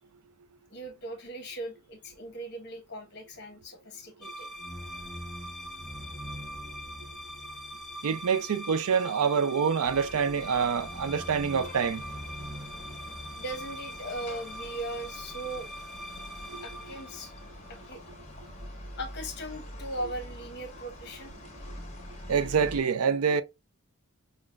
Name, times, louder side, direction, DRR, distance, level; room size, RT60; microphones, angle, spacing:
voice 1, 0.7-4.5 13.3-15.7 16.6-17.3 17.7-18.0 19.0-21.3, right 1 dB, 50° left, 1.1 m, -39 dB
sound 1, 4.2-17.8, equal, ahead, 0.5 m, -41 dB
voice 2, 8.0-12.0 16.5-16.6 22.3-23.4, right 6 dB, 80° right, 0.5 m, -26 dB
sound 2, 9.8-22.8, left 1 dB, 30° left, 1.4 m, -45 dB
6.0 x 2.1 x 2.3 m
head